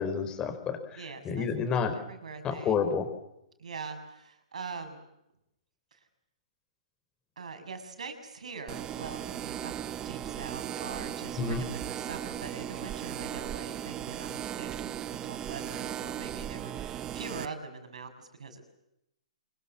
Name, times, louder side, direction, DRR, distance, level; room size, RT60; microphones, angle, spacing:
voice 1, 0.0-2.0 2.4-3.1 11.4-11.6, left 6 dB, 20° left, 9 dB, 4.9 m, -30 dB
voice 2, 1.0-2.7 3.6-5.0 7.4-14.9 15.3-18.6, right 4 dB, 85° right, 8 dB, 6.8 m, -43 dB
sound 1, 8.7-17.5, right 10 dB, 20° right, 1.0 m, -37 dB
26.0 x 23.5 x 7.3 m, 0.83 s
hypercardioid pair, 145°, 4 cm